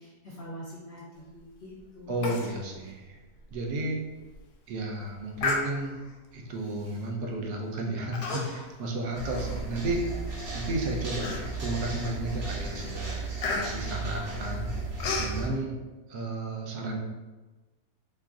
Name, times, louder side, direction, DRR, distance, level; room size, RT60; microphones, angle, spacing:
voice 1, 0.0-2.3, equal, 60° left, -7 dB, 0.7 m, -44 dB
voice 2, 2.1-3.2 3.5-4.0 4.7-5.9 6.3-10.1 10.5-14.7 15.2-15.7 16.1-17.0, right 2 dB, 75° right, 0 dB, 1.1 m, -33 dB
Human voice, 2.2-2.6 2.9-3.0 3.5-3.6 4.2-4.4 5.4-6.1 6.9-7.1 8.1-8.7 9.1-10.1 10.6-10.7 11.2-11.8 12.3-12.5 12.8-15.4, left 3 dB, 80° left, 1.2 m, -33 dB
sound 1, 9.1-15.5, right 3 dB, 45° right, 1.0 m, -35 dB
3.1 x 2.4 x 3.5 m, 1.2 s
omnidirectional pair, 1.8 m